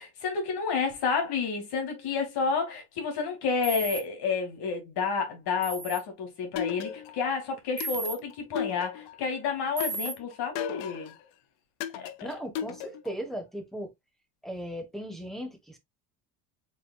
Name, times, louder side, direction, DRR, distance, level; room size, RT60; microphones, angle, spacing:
voice 1, 0.0-11.1 11.9-12.1, left 5 dB, 60° left, 2.5 m, -30 dB
sound 1, 3.6-4.0 5.6-6.0 7.8-8.2 9.8-10.1, right 3 dB, 25° right, 1.4 m, -34 dB
sound 2, 6.6-7.3 7.8-9.3 9.8-11.2 11.8-13.2, left 9 dB, 80° left, 0.8 m, -36 dB
voice 2, 12.2-13.9 14.4-15.8, equal, ahead, 1.2 m, -37 dB
4.9 x 3.9 x 2.3 m
cardioid pair, 115°, 44 cm